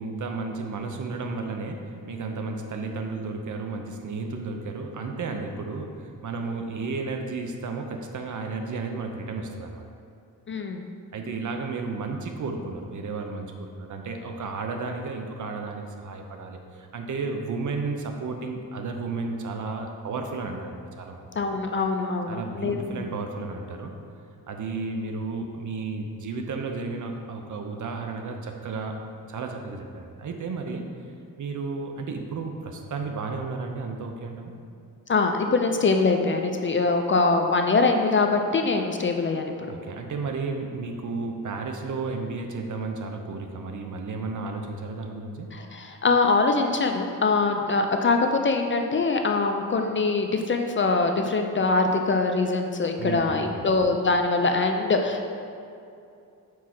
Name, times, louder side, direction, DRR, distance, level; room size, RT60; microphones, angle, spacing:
voice 1, 0.0-9.8 11.1-21.2 22.3-24.0 24.5-29.0 29.3-30.9 31.4-34.5 39.7-45.5 47.6-47.7 53.0-53.2 53.5-53.6, right 4 dB, 60° right, 4 dB, 0.7 m, -33 dB
voice 2, 10.5-10.9 21.4-23.0 35.1-39.5 45.5-55.3, left 3 dB, 35° left, 4 dB, 0.4 m, -23 dB
4.7 x 4.6 x 5.8 m, 2.6 s
wide cardioid pair, 150°, 35 cm